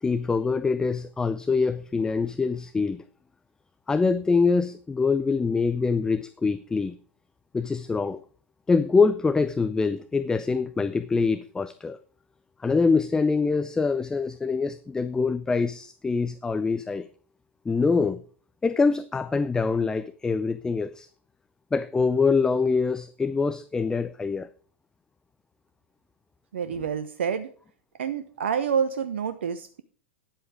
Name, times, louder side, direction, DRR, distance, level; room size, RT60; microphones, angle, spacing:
voice 1, 0.0-3.0 3.9-6.9 7.5-8.2 8.7-12.0 12.6-17.1 17.7-18.2 18.6-21.1 21.7-24.5, left 4 dB, 10° left, 0.5 m, -24 dB
voice 2, 26.5-27.5 28.0-29.8, right 7 dB, 65° right, 0.7 m, -28 dB
9.9 x 7.8 x 4.8 m
figure-of-eight pair, 100°, 7 cm